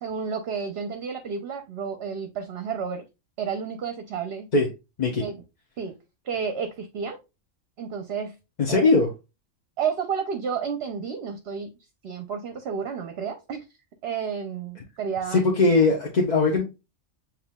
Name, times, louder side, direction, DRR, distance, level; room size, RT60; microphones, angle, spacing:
voice 1, 0.0-3.0 3.4-4.5 5.2-5.4 5.8-5.9 6.2-7.2 7.8-8.3 8.7-8.9 9.8-11.7 12.0-13.6 14.0-15.5, right 6 dB, 60° right, 0.9 m, -31 dB
voice 2, 8.6-9.1 15.3-16.6, left 3 dB, 40° left, 0.9 m, -20 dB
7.0 x 3.1 x 2.2 m
omnidirectional pair, 1.3 m